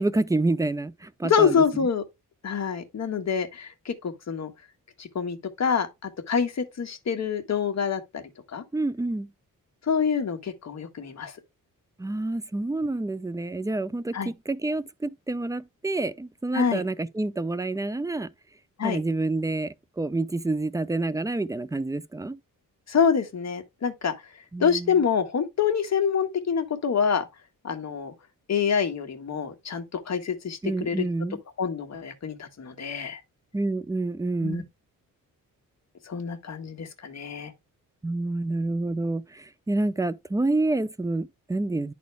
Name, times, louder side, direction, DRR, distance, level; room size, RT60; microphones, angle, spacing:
voice 1, 0.0-1.9 8.7-9.3 12.0-18.3 18.8-22.4 24.5-25.0 30.6-31.4 33.5-34.6 38.0-41.9, right 2 dB, 10° right, 0.5 m, -28 dB
voice 2, 1.2-2.0 2.4-4.5 5.0-5.9 6.3-8.2 8.5-8.6 9.9-11.3 14.1-14.3 16.5-16.8 18.8-19.0 22.9-24.1 24.6-27.2 27.6-28.1 28.5-31.0 31.6-33.2 34.4-34.6 36.1-37.5, left 6 dB, 50° left, 1.6 m, -26 dB
10.5 x 4.2 x 3.3 m
cardioid pair, 110°, 34 cm